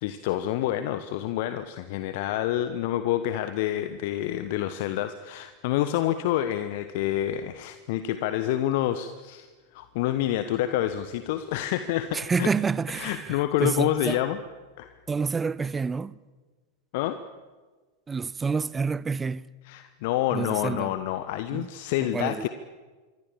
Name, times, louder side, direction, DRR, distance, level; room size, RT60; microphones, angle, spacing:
voice 1, 0.0-9.5 9.7-12.5 12.9-14.4 14.8-14.9 16.9-17.2 19.6-22.5, left 12 dB, 50° left, 1.2 m, -28 dB
voice 2, 12.1-14.2 15.1-16.2 18.1-19.5 20.3-20.9 21.5-21.7 22.1-22.5, right 5 dB, 15° right, 0.8 m, -28 dB
26.5 x 24.0 x 7.4 m
figure-of-eight pair, 90°, 0 cm